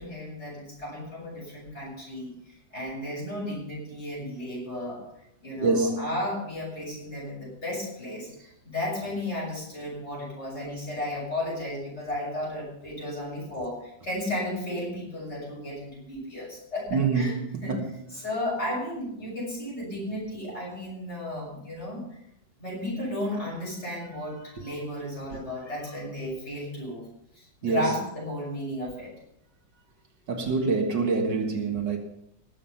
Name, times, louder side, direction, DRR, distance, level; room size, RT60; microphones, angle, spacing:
voice 1, 0.0-2.3 2.7-5.0 5.4-8.3 8.6-17.3 17.6-17.8 18.2-22.0 22.6-27.1 27.3-29.1, left 1 dB, 35° left, 6.6 m, -34 dB
voice 2, 5.6-6.1 16.9-17.8 24.6-24.7 25.3-25.4 27.6-27.9 30.3-32.0, right 4 dB, 70° right, 2.3 m, -26 dB
19.0 x 7.6 x 5.6 m
omnidirectional pair, 2.0 m